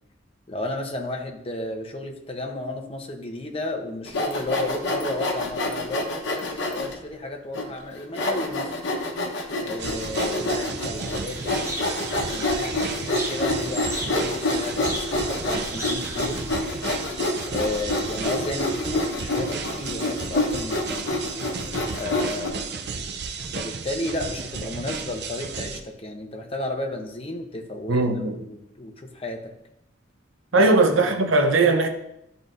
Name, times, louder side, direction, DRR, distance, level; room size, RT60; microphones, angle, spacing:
voice 1, 0.5-8.7 9.6-16.4 17.5-21.0 21.9-22.8 23.5-29.4 30.5-30.6 31.1-31.3, left 2 dB, 30° left, 0.8 m, -33 dB
Sawing, 4.1-6.9 7.5-7.6 8.2-22.5, left 2 dB, 65° left, 1.0 m, -27 dB
sound 1, 9.8-25.8, right 5 dB, 55° right, 0.5 m, -34 dB
sound 2, 11.0-16.5, right 1 dB, 15° right, 0.7 m, -36 dB
voice 2, 27.9-28.4 30.5-31.9, right 3 dB, 85° right, 0.8 m, -19 dB
11.0 x 3.9 x 2.6 m
head